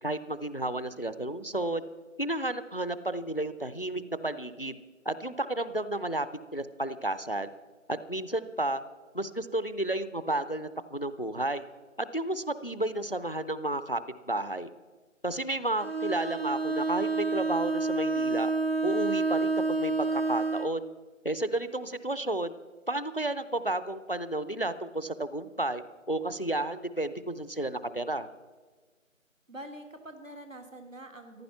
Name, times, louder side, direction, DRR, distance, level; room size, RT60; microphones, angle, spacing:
voice 1, 0.0-1.8 2.2-4.8 5.1-6.3 6.5-7.5 7.9-8.8 9.1-11.6 12.0-14.0 14.3-14.7 15.2-18.5 18.8-20.9 21.2-22.5 22.9-25.8 26.1-28.3, right 1 dB, 45° left, 14 dB, 0.5 m, -32 dB
Bowed string instrument, 15.8-20.8, right 3 dB, 50° right, 0.6 m, -29 dB
voice 2, 29.5-31.4, right 1 dB, 70° right, 6 dB, 2.0 m, -45 dB
14.5 x 11.0 x 5.7 m, 1.3 s
figure-of-eight pair, 170°, 40 cm